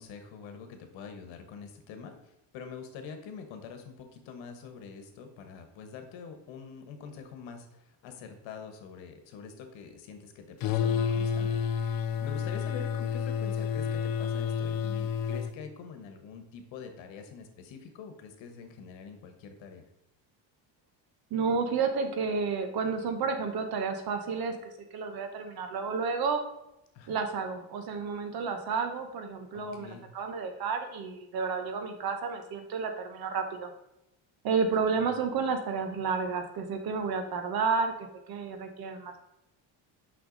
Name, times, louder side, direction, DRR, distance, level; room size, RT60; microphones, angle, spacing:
voice 1, 0.0-19.8 26.9-27.2 29.5-30.0 34.8-35.1, left 5 dB, 80° left, 6 dB, 1.3 m, -45 dB
sound 1, 10.6-15.5, left 7 dB, 50° left, 0.6 m, -30 dB
voice 2, 21.3-24.5 24.9-26.4 27.1-33.7 34.4-39.2, right 5 dB, 55° right, 6 dB, 1.1 m, -31 dB
6.1 x 5.8 x 3.9 m, 0.86 s
cardioid pair, 165°, 44 cm